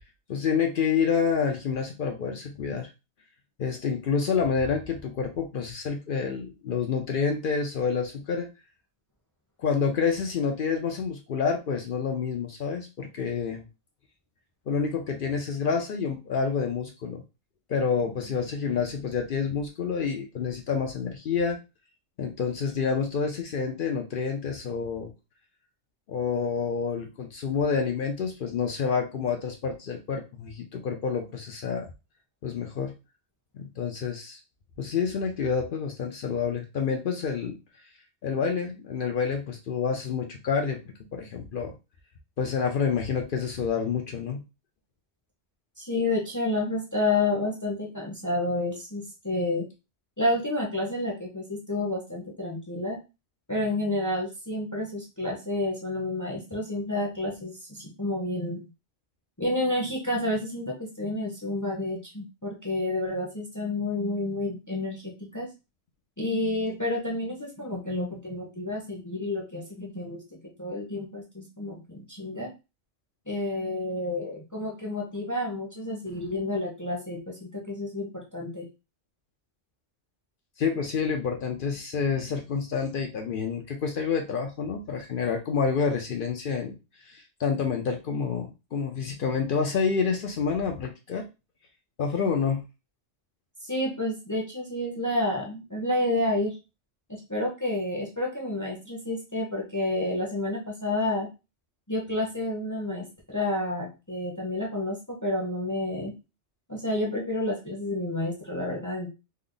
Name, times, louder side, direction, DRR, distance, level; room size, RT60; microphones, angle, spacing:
voice 1, 0.3-2.9 3.6-8.5 9.6-13.7 14.7-17.2 17.7-21.6 22.2-25.1 26.1-31.9 32.4-32.9 33.5-34.4 34.8-37.6 38.2-40.8 41.1-41.7 42.4-44.4 80.6-86.8 87.0-91.2 92.0-92.6, left 6 dB, 60° left, 3 dB, 0.6 m, -28 dB
voice 2, 45.8-49.7 50.2-53.0 53.5-58.6 59.4-65.5 66.2-72.5 73.3-78.7 93.6-96.5 97.1-101.3 101.9-106.1 106.7-109.1, left 2 dB, 20° left, -1 dB, 0.6 m, -30 dB
3.2 x 2.0 x 3.7 m, 0.28 s
omnidirectional pair, 1.3 m